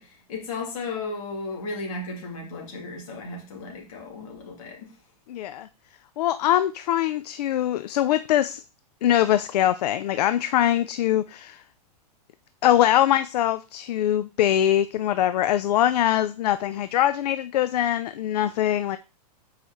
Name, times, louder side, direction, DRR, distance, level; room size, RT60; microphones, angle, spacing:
voice 1, 0.0-4.9, left 3 dB, 55° left, -1 dB, 2.7 m, -35 dB
voice 2, 5.3-5.7 6.2-8.6 9.0-11.6 12.6-19.0, left 12 dB, 75° left, 12 dB, 0.4 m, -22 dB
7.9 x 4.8 x 3.0 m, 0.33 s
supercardioid pair, 160°, 21 cm